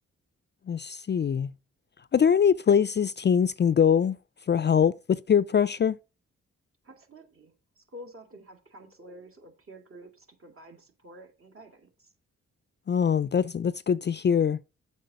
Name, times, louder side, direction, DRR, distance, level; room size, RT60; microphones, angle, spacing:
voice 1, 0.7-1.5 2.1-4.2 4.5-6.0 12.9-14.6, left 7 dB, 35° left, 0.4 m, -23 dB
voice 2, 6.8-12.1, equal, 45° right, 2.5 m, -49 dB
7.5 x 5.2 x 6.7 m
cardioid pair, 60°, 29 cm